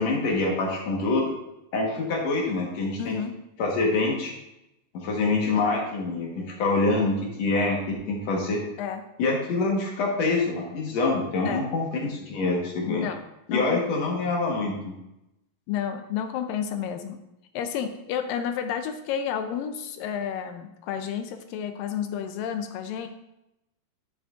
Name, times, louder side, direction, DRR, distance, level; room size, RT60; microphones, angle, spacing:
voice 1, 0.0-1.3 1.7-3.2 3.6-4.3 4.9-8.6 9.2-13.1 13.5-14.9, left 3 dB, 60° left, -1 dB, 2.2 m, -25 dB
voice 2, 3.0-3.4 8.8-9.0 11.5-11.7 12.8-13.2 13.5-13.8 15.7-17.2 17.5-23.1, left 8 dB, 80° left, 7 dB, 2.3 m, -31 dB
10.5 x 7.7 x 2.5 m, 0.88 s
omnidirectional pair, 4.0 m